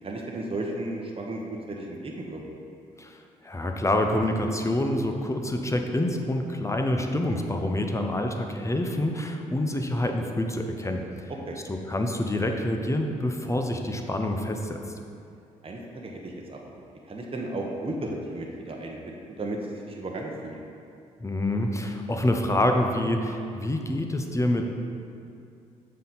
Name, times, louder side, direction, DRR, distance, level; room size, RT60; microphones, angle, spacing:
voice 1, 0.0-1.4 1.7-2.4 11.5-11.6 15.6-20.6, right 2 dB, 30° right, 0 dB, 1.1 m, -34 dB
voice 2, 3.0-11.1 11.7-14.8 21.2-24.7, left 1 dB, 15° left, 4 dB, 0.9 m, -27 dB
7.5 x 5.7 x 4.2 m, 2.5 s
hypercardioid pair, 45°, 18 cm